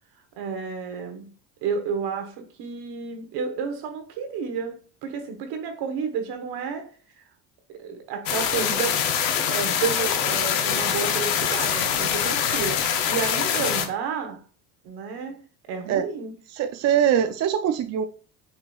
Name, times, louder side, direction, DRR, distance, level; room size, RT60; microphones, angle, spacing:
voice 1, 0.4-1.3 1.6-6.9 7.7-9.1 9.3-14.4 14.8-16.3, right 6 dB, 70° right, 1.1 m, -31 dB
sound 1, 8.3-13.9, left 8 dB, 85° left, 0.8 m, -24 dB
voice 2, 16.5-18.1, right 9 dB, 45° right, 0.4 m, -22 dB
6.7 x 2.8 x 2.3 m
supercardioid pair, 85°, 39 cm